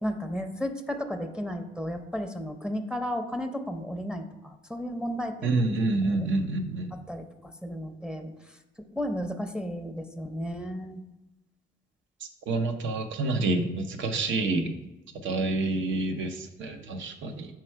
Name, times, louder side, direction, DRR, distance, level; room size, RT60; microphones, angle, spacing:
voice 1, 0.0-5.6 6.1-6.3 6.9-8.6 8.9-11.0, equal, 5° right, 5 dB, 0.6 m, -34 dB
voice 2, 5.4-6.9 12.5-14.7 15.2-17.5, right 2 dB, 70° right, 7 dB, 0.8 m, -28 dB
5.9 x 4.6 x 4.5 m, 1.0 s
cardioid pair, 90°, 20 cm